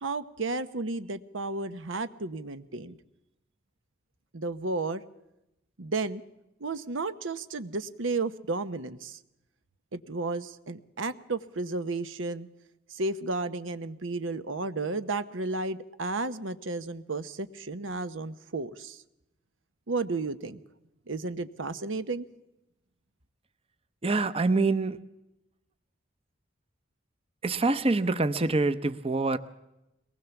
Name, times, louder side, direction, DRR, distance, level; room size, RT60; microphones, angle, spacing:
voice 1, 0.0-3.0 4.3-5.0 5.8-6.2 6.6-9.2 9.9-12.5 12.9-19.0 19.9-20.6 21.1-22.2, right 3 dB, 90° right, 12 dB, 1.0 m, -33 dB
voice 2, 24.0-25.0 27.4-29.4, right 3 dB, 30° right, 12 dB, 0.7 m, -25 dB
22.5 x 19.5 x 7.0 m, 0.88 s
head